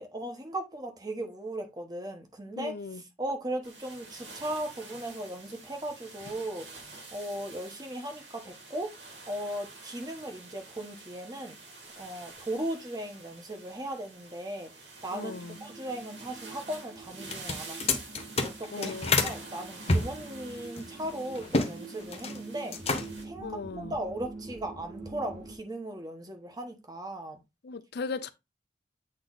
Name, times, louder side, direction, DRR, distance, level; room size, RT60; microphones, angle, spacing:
voice 1, 0.0-2.7 3.2-8.9 9.3-11.6 12.0-14.7 15.0-15.3 15.6-18.0 18.4-18.9 19.2-22.8 23.2-27.4, right 1 dB, 25° right, 1.1 m, -37 dB
voice 2, 2.6-3.0 15.1-15.6 18.7-19.4 23.4-24.0 27.6-28.3, left 4 dB, 65° left, 0.5 m, -37 dB
sound 1, 3.6-23.2, right 3 dB, 80° right, 2.4 m, -48 dB
sound 2, 15.1-25.6, right 3 dB, 45° right, 2.0 m, -46 dB
sound 3, 17.2-19.4 19.9-21.7 22.0-22.4 22.7-23.3, left 3 dB, 35° left, 1.0 m, -28 dB
8.0 x 3.0 x 4.0 m
head